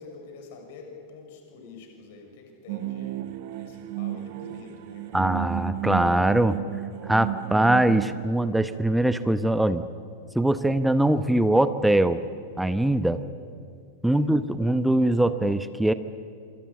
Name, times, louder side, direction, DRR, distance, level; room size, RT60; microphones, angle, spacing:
voice 1, 0.0-5.3 14.0-14.3, left 4 dB, 50° left, 3 dB, 6.5 m, -47 dB
sound 1, 2.7-8.1, right 13 dB, 50° right, 1.4 m, -33 dB
voice 2, 5.1-6.6 7.0-9.8 10.3-12.2 12.6-13.2 14.0-15.9, right 1 dB, 5° right, 12 dB, 1.0 m, -22 dB
27.0 x 27.0 x 7.2 m, 2.3 s
figure-of-eight pair, 90°, 0 cm